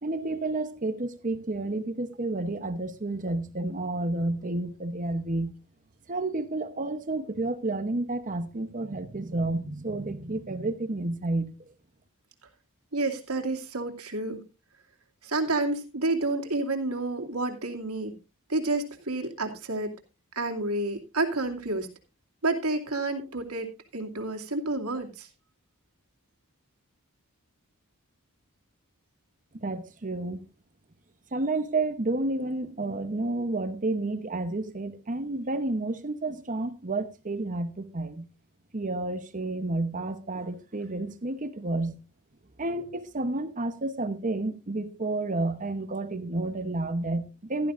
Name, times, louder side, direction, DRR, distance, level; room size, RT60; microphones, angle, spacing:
voice 1, 0.0-5.5 6.1-11.5 29.6-30.4 31.3-38.3 38.7-42.0 42.6-47.7, right 2 dB, 35° right, 0.9 m, -30 dB
voice 2, 12.9-14.4 15.2-18.1 18.5-19.9 20.4-21.9 22.4-25.3, right 2 dB, 85° right, 2.4 m, -29 dB
16.0 x 12.0 x 2.5 m
head